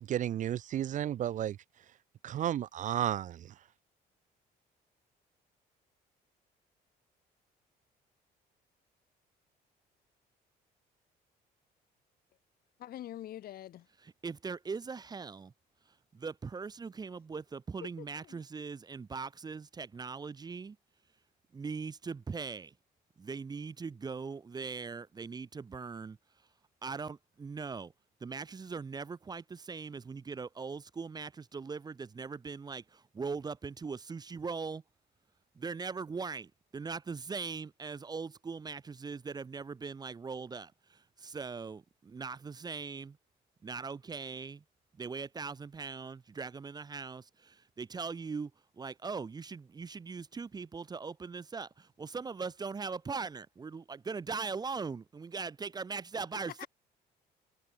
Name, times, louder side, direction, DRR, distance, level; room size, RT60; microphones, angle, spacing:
voice 1, 0.1-1.6 2.2-3.5, right 11 dB, 50° right, 0.5 m, -32 dB
voice 2, 12.8-13.9 18.0-18.4 56.6-56.7, left 12 dB, 60° left, 1.8 m, -45 dB
voice 3, 14.0-15.5 16.1-20.8 21.5-22.7 23.2-26.2 26.8-27.9 28.2-34.8 35.5-43.2 43.6-44.6 44.9-48.5 48.8-56.7, right 5 dB, 25° right, 0.8 m, -40 dB
cardioid pair, 110°, 17 cm